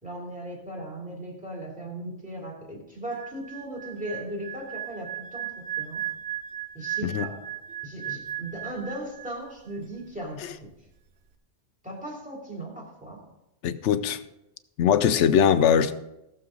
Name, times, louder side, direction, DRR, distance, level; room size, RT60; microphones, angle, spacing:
voice 1, 0.0-6.1 6.7-7.4 7.8-10.7 11.8-13.3, right 1 dB, 5° right, 2.8 m, -37 dB
sound 1, 3.1-9.5 9.7-10.0, right 11 dB, 75° right, 1.1 m, -36 dB
voice 2, 13.6-14.2 14.8-15.9, left 8 dB, 80° left, 1.0 m, -21 dB
16.5 x 7.0 x 3.8 m
omnidirectional pair, 1.2 m